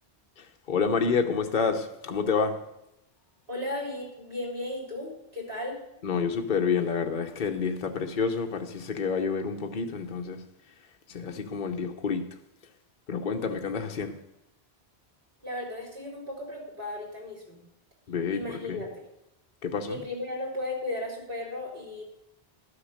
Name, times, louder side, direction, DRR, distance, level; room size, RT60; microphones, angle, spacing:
voice 1, 0.4-2.5 6.0-10.4 11.1-12.2 13.1-14.1 18.1-18.4 18.7-18.8 19.6-20.0, left 5 dB, 50° left, 4 dB, 1.0 m, -28 dB
voice 2, 3.5-5.8 15.4-17.6 18.3-19.1 19.9-22.0, left 1 dB, 55° right, -3 dB, 4.5 m, -35 dB
12.0 x 6.5 x 6.5 m, 0.87 s
omnidirectional pair, 1.1 m